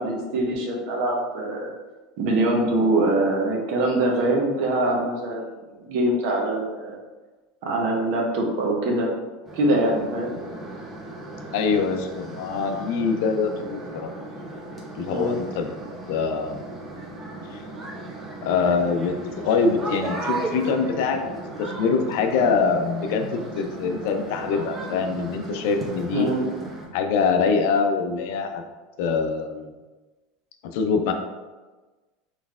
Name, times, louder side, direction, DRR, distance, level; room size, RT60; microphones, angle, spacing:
voice 1, 0.0-1.7 2.2-7.0 7.6-9.1 9.5-10.4 15.1-15.4 26.1-26.4, right 1 dB, 65° right, -1 dB, 0.9 m, -23 dB
sound 1, 9.4-26.9, right 2 dB, 20° right, 0.9 m, -36 dB
voice 2, 11.5-14.1 15.0-15.7 16.1-16.7 17.5-17.6 18.4-21.3 21.6-26.3 26.9-28.6 29.0-29.7 30.7-31.1, left 5 dB, 70° left, 5 dB, 0.5 m, -24 dB
4.2 x 3.2 x 2.4 m, 1.2 s
supercardioid pair, 120°, 0 cm